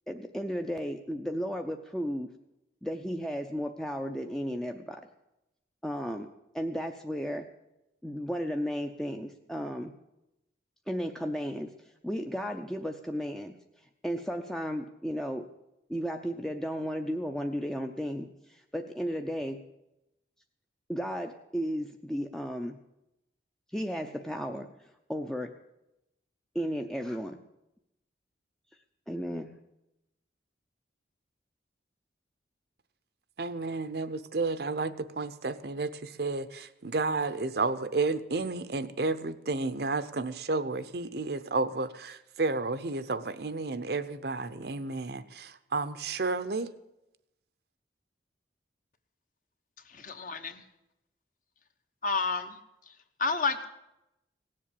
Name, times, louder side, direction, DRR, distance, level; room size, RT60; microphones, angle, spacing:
voice 1, 0.1-2.3 2.8-5.1 5.8-6.3 6.5-7.5 8.0-9.9 10.9-11.7 12.0-13.6 14.0-15.5 15.9-19.6 20.9-22.8 23.7-25.5 26.5-27.4 29.1-29.5, equal, 5° left, 4 dB, 0.5 m, -34 dB
voice 2, 33.4-46.7, right 3 dB, 60° right, 12 dB, 0.7 m, -31 dB
voice 3, 49.9-50.6 52.0-52.6 53.2-53.7, left 4 dB, 45° left, 8 dB, 1.0 m, -30 dB
17.5 x 7.6 x 8.4 m, 0.90 s
head